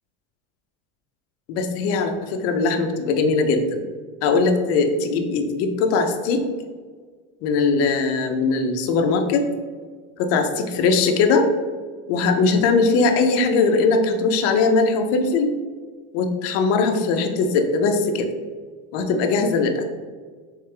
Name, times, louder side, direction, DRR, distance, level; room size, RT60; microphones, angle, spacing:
voice 1, 1.5-3.8 4.2-6.4 7.4-9.5 10.2-11.5 12.1-15.5 16.1-18.3 18.9-19.9, left 4 dB, 45° left, 5 dB, 0.5 m, -20 dB
3.3 x 3.2 x 3.2 m, 1.5 s
supercardioid pair, 150°, 36 cm